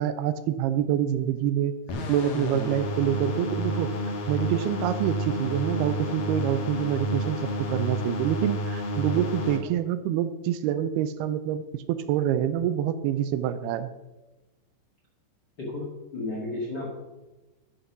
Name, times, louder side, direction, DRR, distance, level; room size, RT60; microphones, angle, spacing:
voice 1, 0.0-1.7 2.1-3.9 4.3-11.6 11.9-13.9, right 10 dB, 80° right, 11 dB, 2.5 m, -26 dB
sound 1, 1.9-9.6, equal, 75° left, 3.4 m, -30 dB
voice 2, 15.6-16.9, left 2 dB, 40° left, -3 dB, 1.6 m, -33 dB
11.0 x 6.4 x 5.9 m, 1.1 s
omnidirectional pair, 4.7 m